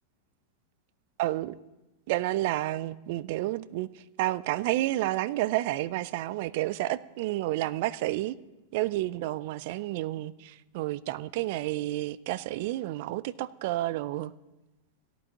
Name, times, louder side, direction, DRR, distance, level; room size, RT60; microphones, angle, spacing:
voice 1, 1.2-1.5 2.1-3.9 4.2-8.4 8.7-14.3, right 16 dB, 60° right, 0.4 m, -30 dB
17.5 x 11.0 x 2.9 m
hypercardioid pair, 100°, 0 cm